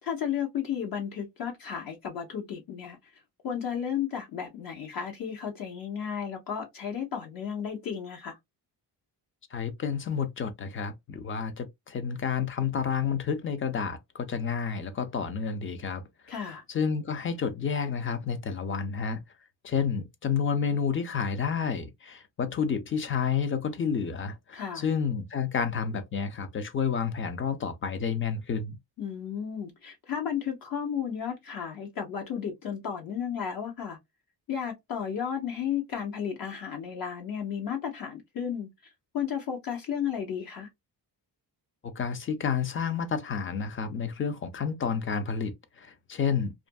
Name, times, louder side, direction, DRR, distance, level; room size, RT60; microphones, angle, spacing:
voice 1, 0.0-3.0 3.4-8.4 16.3-16.6 24.5-24.8 29.0-34.0 34.5-38.7 39.1-40.7, left 8 dB, 55° left, 0.8 m, -33 dB
voice 2, 9.5-16.0 16.7-19.2 19.6-28.8 41.8-46.5, left 6 dB, 30° left, 0.4 m, -30 dB
2.6 x 2.5 x 2.2 m
cardioid pair, 155°, 42 cm